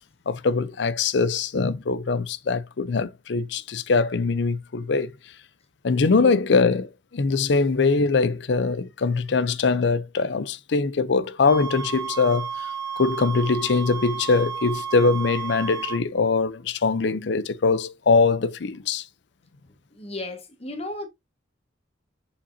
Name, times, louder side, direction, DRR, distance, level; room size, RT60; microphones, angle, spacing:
voice 1, 0.3-5.1 5.8-12.7 13.0-19.0, left 4 dB, 65° left, 0.5 m, -22 dB
sound 1, 11.4-16.0, right 7 dB, 20° right, 2.3 m, -32 dB
voice 2, 19.9-21.1, left 2 dB, 30° left, 1.4 m, -34 dB
7.0 x 5.1 x 2.6 m
head